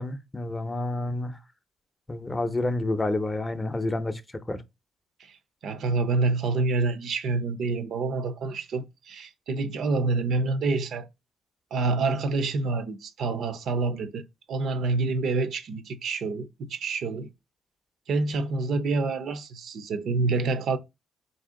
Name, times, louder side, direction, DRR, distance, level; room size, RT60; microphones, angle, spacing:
voice 1, 0.0-1.4 2.1-4.2 4.5-4.6, left 2 dB, 15° left, 0.6 m, -29 dB
voice 2, 5.6-11.1 11.7-14.2 14.5-17.3 18.1-20.8, right 3 dB, 70° right, 0.6 m, -27 dB
4.2 x 2.7 x 3.7 m
cardioid pair, 90°, 0 cm